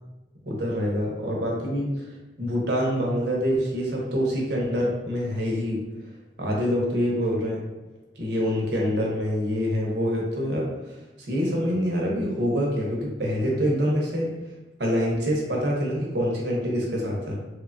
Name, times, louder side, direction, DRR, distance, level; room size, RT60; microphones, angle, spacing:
voice 1, 0.4-2.1 2.4-5.8 6.4-7.6 8.2-14.3 14.8-17.4, equal, 65° right, -2 dB, 0.7 m, -26 dB
3.1 x 2.2 x 2.5 m, 1.1 s
head